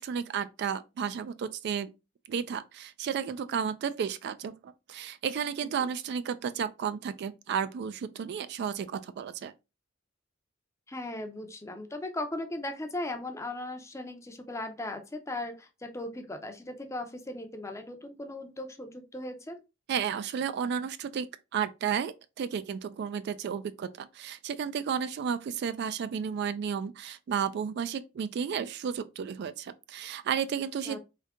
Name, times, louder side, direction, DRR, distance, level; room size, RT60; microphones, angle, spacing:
voice 1, 0.0-1.9 2.3-9.5 19.9-21.3 21.5-31.0, right 7 dB, 55° right, 0.3 m, -33 dB
voice 2, 10.9-19.6 30.8-31.0, left 2 dB, 15° left, 0.5 m, -38 dB
3.6 x 2.7 x 3.5 m
head